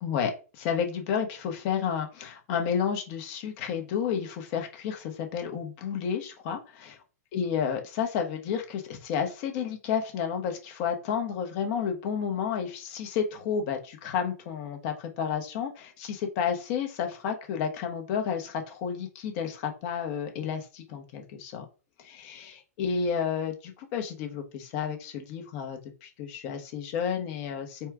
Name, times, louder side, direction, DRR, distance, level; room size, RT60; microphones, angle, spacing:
voice 1, 0.0-7.0 7.3-21.6 22.0-27.9, left 7 dB, 40° left, 4 dB, 1.2 m, -31 dB
4.3 x 2.4 x 4.6 m, 0.33 s
hypercardioid pair, 135°, 9 cm